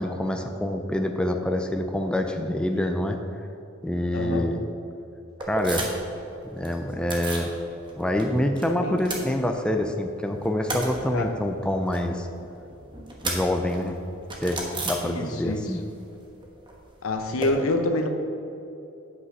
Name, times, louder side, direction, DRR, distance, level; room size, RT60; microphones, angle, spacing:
voice 1, 0.0-3.2 3.8-4.6 5.5-5.9 6.5-7.5 8.0-12.3 13.2-13.9 14.4-14.6 14.8-15.8, left 1 dB, 5° left, 4 dB, 0.5 m, -26 dB
voice 2, 4.1-4.5 8.7-9.0 11.1-11.3 15.0-15.8 17.0-18.1, left 2 dB, 90° left, 5 dB, 0.9 m, -27 dB
sound 1, 5.4-6.2 6.4-7.5 7.9-8.7 8.9-9.9 10.2-15.6 15.9-17.5, right 2 dB, 25° right, 1.3 m, -34 dB
8.2 x 6.1 x 5.4 m, 2.9 s
head